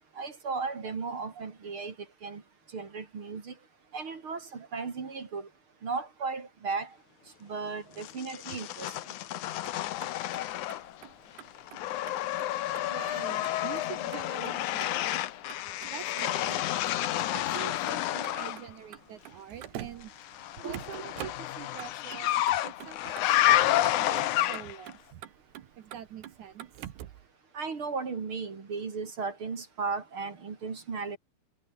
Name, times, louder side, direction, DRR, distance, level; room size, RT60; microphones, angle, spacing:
voice 1, 0.2-1.9 2.2-2.4 2.7-3.5 3.9-5.5 5.8-6.9 7.4-9.0 20.6-20.8 27.5-31.2, right 4 dB, 35° right, 2.8 m, -35 dB
sound 1, 8.0-11.1 11.4-18.6 20.2-24.9, left 14 dB, 75° left, 1.9 m, -30 dB
Motor vehicle (road), 9.5-27.3, right 12 dB, 80° right, 3.6 m, -48 dB
voice 2, 12.9-15.1 15.9-16.7 17.3-20.1 20.6-25.2 25.8-26.7, right 9 dB, 65° right, 2.2 m, -45 dB
omnidirectional pair, 4.7 m